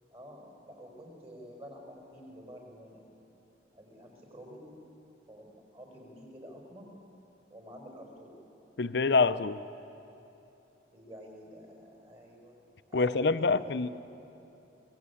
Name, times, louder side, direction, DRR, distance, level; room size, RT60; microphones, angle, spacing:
voice 1, 0.1-3.0 3.7-4.7 5.3-6.9 7.5-8.4 10.9-12.6 12.9-13.9, equal, 30° right, 1 dB, 5.2 m, -49 dB
voice 2, 8.8-9.6 12.9-13.9, left 4 dB, 60° left, 13 dB, 0.6 m, -26 dB
26.5 x 18.0 x 8.5 m, 3.0 s
head